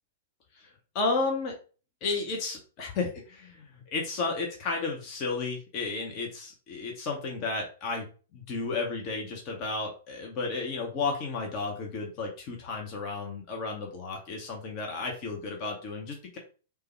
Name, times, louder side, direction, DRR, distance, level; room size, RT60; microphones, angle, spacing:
voice 1, 0.9-1.5 2.0-8.1 8.3-16.4, left 3 dB, 35° left, 0 dB, 0.7 m, -33 dB
3.3 x 2.2 x 3.1 m, 0.37 s
figure-of-eight pair, 105°, 0 cm